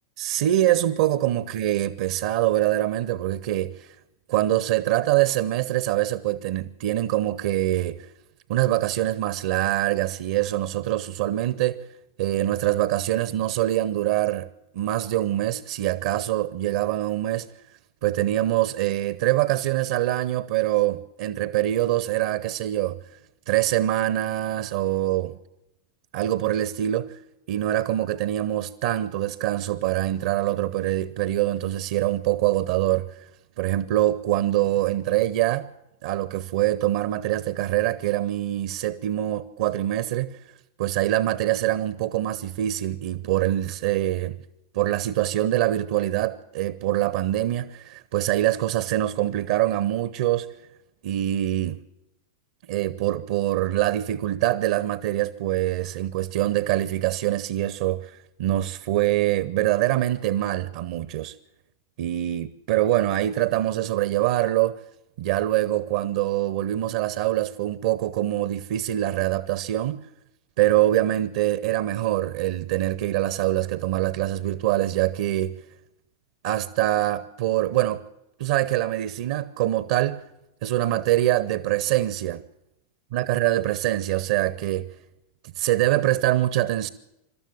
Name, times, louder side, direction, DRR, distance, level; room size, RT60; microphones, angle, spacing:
voice 1, 0.2-3.9 4.3-8.1 8.5-11.8 12.2-14.5 14.7-17.5 18.0-23.0 23.5-25.4 26.1-27.1 27.5-33.1 33.6-35.7 36.0-40.4 40.8-44.4 44.7-50.5 51.0-51.8 52.7-61.3 62.0-64.8 65.2-70.0 70.6-75.6 76.4-78.0 78.4-80.3 80.6-82.4 83.1-84.9 85.6-86.9, right 14 dB, 50° right, 0.7 m, -24 dB
25.5 x 13.0 x 8.8 m
figure-of-eight pair, 90°, 0 cm